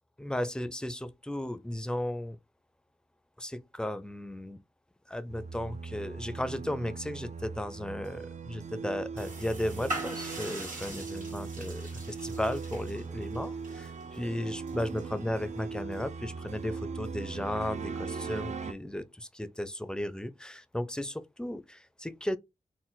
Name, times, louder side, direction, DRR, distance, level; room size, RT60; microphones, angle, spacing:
voice 1, 0.2-2.4 3.4-4.6 5.1-11.8 12.2-22.4, left 1 dB, 5° left, 0.5 m, -35 dB
sound 1, 5.3-18.7, right 5 dB, 60° right, 0.4 m, -39 dB
sound 2, 9.2-15.8, right 2 dB, 75° right, 1.8 m, -43 dB
4.1 x 2.1 x 3.9 m
cardioid pair, 65°, 14 cm